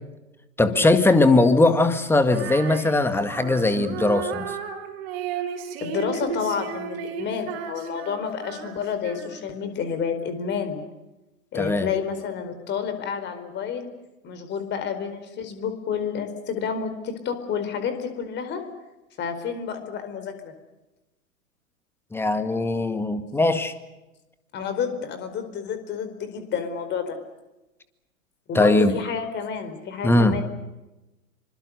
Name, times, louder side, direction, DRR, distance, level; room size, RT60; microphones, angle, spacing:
voice 1, 0.6-4.6 11.5-11.9 22.1-23.7 28.5-29.0 30.0-30.4, left 2 dB, 5° left, 10 dB, 1.8 m, -20 dB
Female singing, 2.3-9.6, right 7 dB, 45° right, 4.8 m, -34 dB
voice 2, 5.8-10.8 11.5-13.9 14.2-18.6 19.2-20.5 24.5-27.2 28.5-30.4, left 7 dB, 25° left, 9 dB, 4.6 m, -30 dB
27.0 x 25.5 x 6.7 m, 1.0 s
figure-of-eight pair, 110°, 42 cm